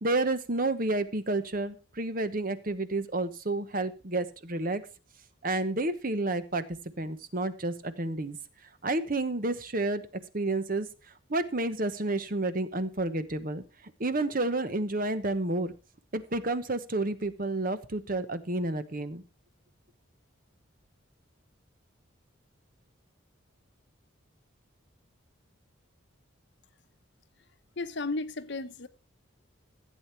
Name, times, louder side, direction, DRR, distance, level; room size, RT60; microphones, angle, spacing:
voice 1, 0.0-4.8 5.4-6.6 7.0-8.4 8.8-10.0 10.3-10.9 11.3-13.6 14.0-15.7 16.1-19.2, right 2 dB, 45° right, 1.1 m, -30 dB
voice 2, 27.8-28.9, left 3 dB, 55° left, 0.9 m, -34 dB
15.0 x 8.5 x 4.5 m
head